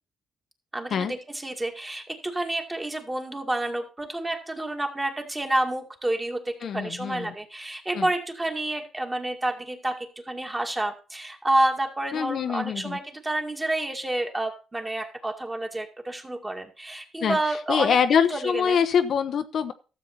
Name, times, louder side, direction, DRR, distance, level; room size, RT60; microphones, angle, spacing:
voice 1, 0.7-18.8, right 1 dB, 15° right, 3 dB, 2.1 m, -29 dB
voice 2, 6.6-7.3 7.9-8.1 12.1-13.0 17.2-17.4 17.7-19.7, left 7 dB, 60° left, 8 dB, 0.8 m, -24 dB
13.0 x 7.3 x 4.1 m, 0.34 s
cardioid pair, 90°, 0 cm